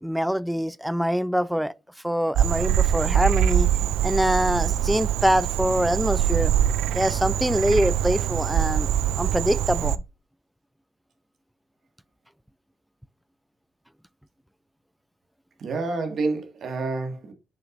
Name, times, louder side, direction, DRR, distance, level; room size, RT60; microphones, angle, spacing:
voice 1, 0.0-1.7 2.0-3.7 4.0-6.5 6.9-8.9 9.2-10.0, equal, 5° right, 0.4 m, -24 dB
Frog, 2.3-10.0, right 10 dB, 90° right, 0.3 m, -23 dB
voice 2, 15.6-17.3, right 3 dB, 65° right, 1.8 m, -28 dB
6.9 x 5.6 x 2.5 m
supercardioid pair, 55°, 0 cm